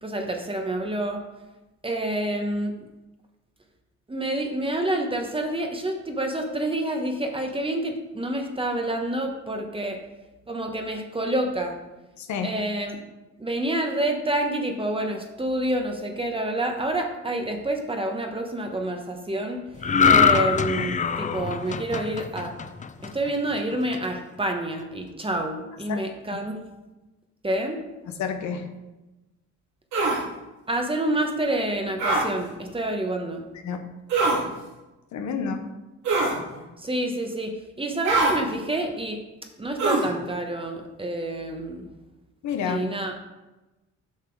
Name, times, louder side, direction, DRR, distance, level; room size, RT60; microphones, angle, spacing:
voice 1, 0.0-1.2 1.8-2.7 4.1-10.0 10.5-11.8 12.4-13.0 13.4-19.6 20.1-22.5 23.0-26.6 27.4-27.8 30.7-33.4 36.8-37.5 37.8-39.2 39.6-41.9 42.6-43.1, right 1 dB, 20° right, 3 dB, 1.1 m, -28 dB
voice 2, 12.2-12.5 25.9-26.0 28.2-28.6 33.6-33.8 35.1-35.6 42.4-42.8, left 6 dB, 70° left, 6 dB, 1.0 m, -29 dB
sound 1, 19.8-23.3 23.7-24.0, left 6 dB, 25° left, 0.4 m, -22 dB
sound 2, 29.9-30.2 32.0-32.3 34.1-34.4 36.1-36.4 38.0-38.4 39.8-40.1, right 3 dB, 70° right, 2.4 m, -22 dB
7.4 x 5.9 x 4.6 m, 1.0 s
cardioid pair, 90°, 30 cm